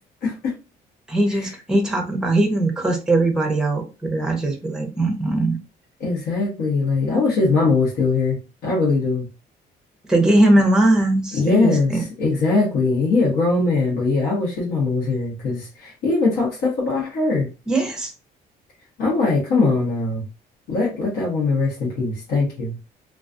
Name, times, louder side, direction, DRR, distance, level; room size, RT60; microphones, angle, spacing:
voice 1, 0.2-0.5 1.3-1.5 6.0-9.3 11.3-17.5 19.0-20.2 20.7-22.7, left 3 dB, 80° left, -4 dB, 1.0 m, -21 dB
voice 2, 1.1-5.6 10.1-12.0 17.7-18.1, right 1 dB, 5° right, 3 dB, 0.6 m, -20 dB
2.3 x 2.3 x 2.4 m, 0.29 s
cardioid pair, 150°, 17 cm